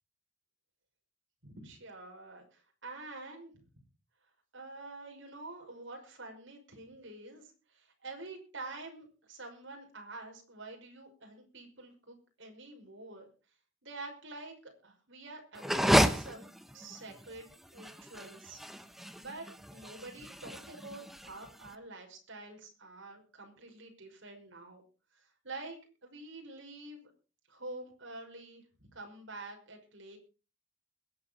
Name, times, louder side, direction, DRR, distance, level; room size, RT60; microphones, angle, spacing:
voice 1, 1.4-3.5 4.5-13.3 13.8-16.5 16.7-18.6 19.2-24.8 25.1-25.8 26.0-27.1 27.5-28.6 28.9-30.2, right 2 dB, 65° right, 2 dB, 5.7 m, -47 dB
Taking a tissue out of the box, 15.6-21.7, equal, ahead, 0.9 m, -31 dB
22.0 x 8.2 x 5.2 m, 0.35 s
head